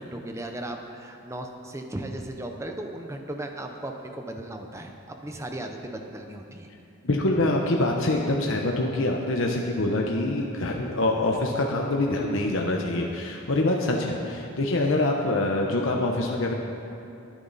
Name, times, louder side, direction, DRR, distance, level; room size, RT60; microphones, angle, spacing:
voice 1, 0.0-6.7, right 1 dB, 15° right, 4 dB, 0.8 m, -36 dB
voice 2, 7.0-16.5, left 2 dB, 65° left, 0 dB, 1.0 m, -25 dB
21.0 x 9.2 x 4.2 m, 2.7 s
head